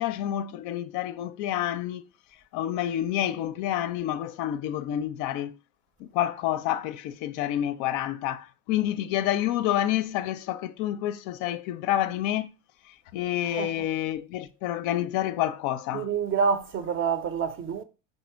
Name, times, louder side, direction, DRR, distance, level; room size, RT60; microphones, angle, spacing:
voice 1, 0.0-2.0 2.5-5.6 6.0-12.5 12.8-16.1, left 12 dB, 55° left, 0.4 m, -28 dB
voice 2, 15.9-17.8, right 6 dB, 35° right, 0.6 m, -27 dB
4.1 x 2.8 x 4.5 m
hypercardioid pair, 85°, 37 cm